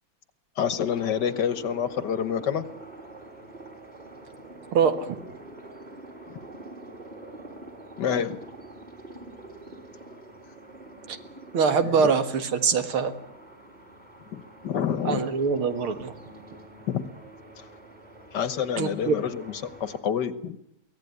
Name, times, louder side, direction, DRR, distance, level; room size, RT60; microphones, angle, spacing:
voice 1, 0.6-2.6 6.3-6.4 8.0-8.4 12.0-12.1 14.3-15.3 16.9-17.0 17.6-17.7 18.3-19.5 19.8-20.6, left 8 dB, 60° left, 14 dB, 1.6 m, -28 dB
sound 1, 0.9-20.0, right 2 dB, 20° right, 3.7 m, -46 dB
voice 2, 4.7-5.2 11.1-11.2 11.5-13.1 15.0-16.1 18.8-19.1, right 6 dB, 85° right, 9 dB, 2.6 m, -23 dB
23.5 x 17.0 x 9.6 m, 0.78 s
omnidirectional pair, 2.3 m